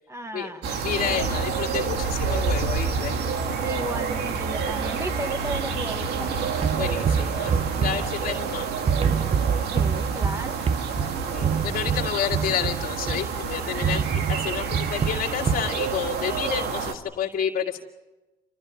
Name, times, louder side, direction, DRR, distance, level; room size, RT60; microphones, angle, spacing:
voice 1, 0.1-0.7 3.6-6.3 9.7-10.6, right 1 dB, 15° right, 8 dB, 1.8 m, -34 dB
sound 1, 0.6-16.9, right 5 dB, 75° right, 2.3 m, -28 dB
voice 2, 0.8-3.1 6.8-8.7 11.3-17.8, left 9 dB, 55° left, -4 dB, 2.2 m, -30 dB
sound 2, 6.6-8.5 8.9-13.3 13.8-15.8, right 7 dB, 35° right, 0.7 m, -26 dB
30.0 x 14.0 x 9.9 m, 1.1 s
cardioid pair, 110°, 17 cm